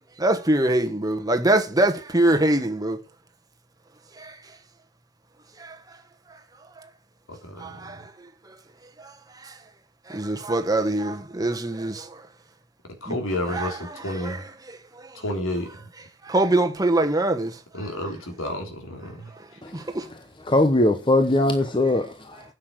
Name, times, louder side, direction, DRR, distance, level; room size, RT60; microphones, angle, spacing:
voice 1, 0.2-3.0 4.2-4.3 5.6-5.8 7.6-8.1 8.5-8.6 9.0-9.1 9.4-9.5 10.1-12.2 13.1-13.2 13.5-13.7 14.2-14.4 14.7-14.8 16.2-17.6 19.7-20.1, right 1 dB, 20° right, 1.2 m, -23 dB
voice 2, 7.3-7.8 13.0-14.5 15.1-15.7 17.7-19.3, left 1 dB, 80° left, 3.4 m, -30 dB
voice 3, 20.5-22.4, left 1 dB, 25° left, 0.8 m, -20 dB
9.6 x 6.7 x 6.4 m
head